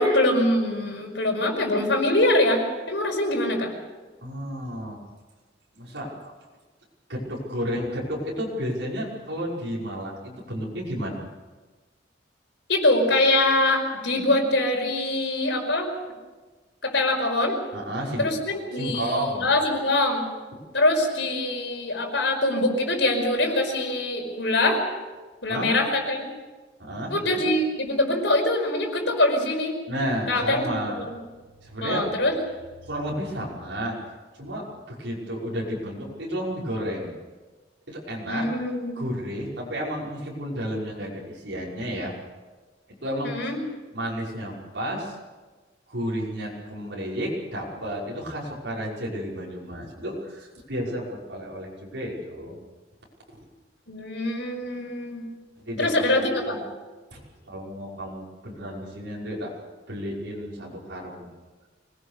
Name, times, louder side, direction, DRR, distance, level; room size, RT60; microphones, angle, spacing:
voice 1, 0.0-2.6 2.9-3.7 12.7-15.9 16.8-17.6 18.2-20.2 20.7-24.8 25.4-26.2 27.1-29.8 30.3-31.0 31.8-32.4 38.3-39.0 43.2-43.6 53.9-55.2 55.8-56.6, left 1 dB, 75° left, 2 dB, 5.3 m, -23 dB
voice 2, 4.2-5.0 5.7-6.3 7.1-11.2 17.7-18.3 18.7-19.5 20.5-20.6 25.5-25.7 26.8-27.4 29.9-31.0 31.6-32.1 32.8-34.0 34.4-37.2 37.9-38.5 38.9-42.1 42.9-43.3 43.9-45.2 45.9-52.6 55.6-56.2 56.5-56.6 57.1-57.2 57.5-59.5 59.9-61.3, equal, 70° right, -4 dB, 5.7 m, -32 dB
25.5 x 18.5 x 6.7 m, 1.3 s
head